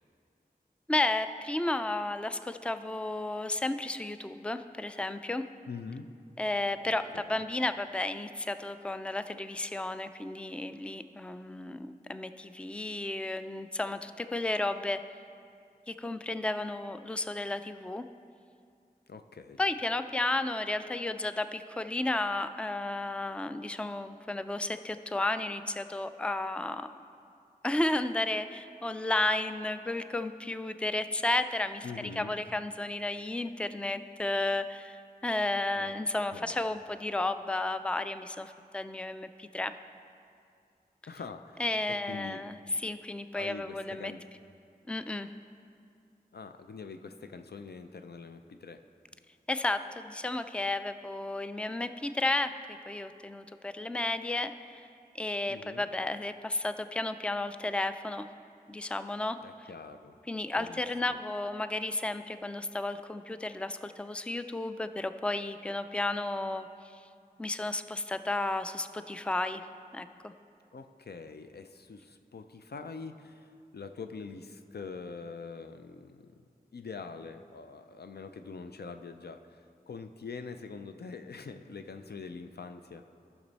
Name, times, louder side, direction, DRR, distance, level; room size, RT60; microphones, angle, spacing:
voice 1, 0.9-5.4 6.4-15.0 15.9-18.0 19.6-26.9 27.6-31.9 32.2-39.7 41.6-44.1 44.9-45.3 49.5-52.5 52.9-54.7 55.1-58.2 58.7-59.4 60.3-66.7 66.9-67.0 67.4-69.6 69.9-70.3, left 2 dB, 5° left, 10 dB, 0.3 m, -33 dB
voice 2, 5.7-6.1 7.1-7.4 19.1-19.6 31.8-32.4 35.8-35.9 36.3-36.6 41.1-41.6 42.0-42.4 43.3-44.2 46.3-48.8 55.5-55.9 59.4-60.1 60.6-60.8 61.1-61.2 70.7-76.4 76.7-79.6 79.9-83.0, left 4 dB, 85° left, 7 dB, 0.5 m, -44 dB
14.0 x 6.1 x 4.1 m, 2.4 s
wide cardioid pair, 45°, 16 cm